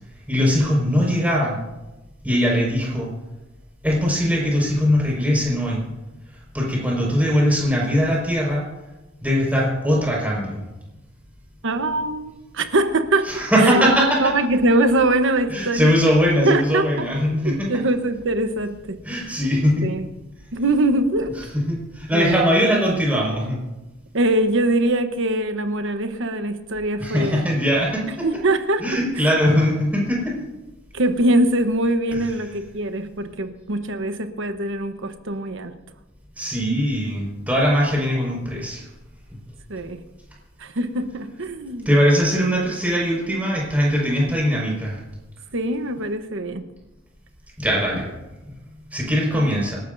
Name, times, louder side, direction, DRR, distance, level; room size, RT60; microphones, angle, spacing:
voice 1, 0.3-1.6 2.2-3.1 3.8-5.8 6.5-8.7 9.2-10.6 13.3-14.2 15.5-17.7 19.0-19.9 21.5-23.6 27.0-28.3 28.8-30.4 32.1-32.2 36.4-38.8 41.9-45.0 47.6-48.1 48.4-48.5 48.9-49.8, equal, 10° right, -3 dB, 5.3 m, -20 dB
voice 2, 11.6-13.3 13.6-13.8 14.2-15.9 16.4-17.1 17.4-19.0 19.2-19.4 19.8-20.1 20.5-21.4 22.1-22.4 24.1-27.5 28.2-28.8 29.2-29.3 30.9-35.8 39.7-40.0 40.6-41.9 45.5-46.6 49.3-49.7, right 1 dB, 65° right, 8 dB, 1.1 m, -22 dB
27.0 x 12.5 x 2.7 m, 1.0 s
head